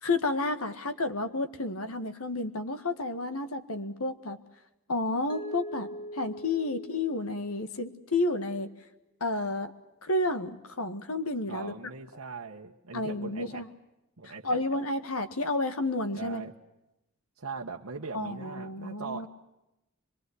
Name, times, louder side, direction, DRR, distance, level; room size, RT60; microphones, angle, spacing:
voice 1, 0.0-4.4 4.9-8.7 9.2-9.7 10.0-11.7 12.9-13.7 14.3-16.4 18.1-19.3, left 2 dB, 90° left, 10 dB, 1.8 m, -31 dB
Mallet percussion, 5.3-8.2, equal, 20° left, 2.0 m, -43 dB
voice 2, 11.5-13.6 14.2-14.6 16.1-16.5 17.4-19.3, right 4 dB, 90° right, 0 dB, 1.2 m, -40 dB
24.5 x 22.5 x 8.1 m, 0.91 s
head